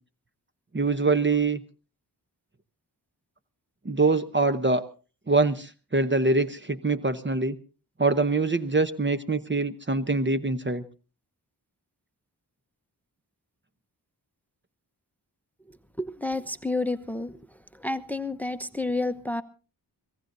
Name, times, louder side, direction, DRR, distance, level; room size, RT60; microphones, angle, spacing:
voice 1, 0.7-1.6 3.8-4.8 5.3-7.6 8.0-10.8, right 3 dB, 30° right, 10 dB, 0.9 m, -24 dB
voice 2, 16.0-17.4 17.8-19.4, left 2 dB, 5° left, 13 dB, 0.9 m, -30 dB
26.0 x 17.0 x 2.7 m, 0.36 s
wide cardioid pair, 60°, 41 cm